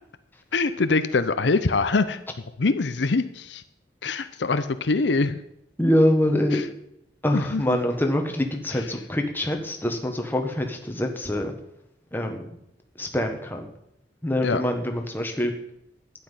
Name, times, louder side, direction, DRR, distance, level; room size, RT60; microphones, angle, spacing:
voice 1, 0.5-2.2 2.6-3.6 4.0-5.4 6.5-6.6 7.3-7.8 8.7-8.8 14.4-14.6, left 3 dB, 80° left, 11 dB, 0.7 m, -24 dB
voice 2, 5.8-6.6 7.2-11.5 12.1-12.5 13.0-13.7 14.2-15.5, left 1 dB, 10° left, 3 dB, 1.5 m, -24 dB
12.0 x 9.7 x 5.6 m, 0.79 s
head